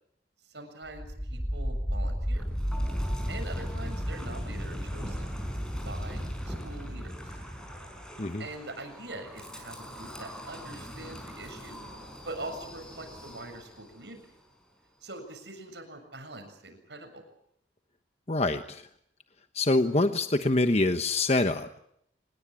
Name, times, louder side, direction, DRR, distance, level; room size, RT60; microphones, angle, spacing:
voice 1, 0.4-2.4 3.3-5.4 5.8-7.4 8.4-11.8 12.3-14.3 15.0-17.2, right 2 dB, 75° right, 6 dB, 7.2 m, -43 dB
Wind, 0.9-13.9, equal, 5° left, 5.2 m, -35 dB
voice 2, 18.3-18.9 19.5-21.7, left 2 dB, 35° left, 8 dB, 1.1 m, -25 dB
25.5 x 21.0 x 8.6 m, 0.71 s
head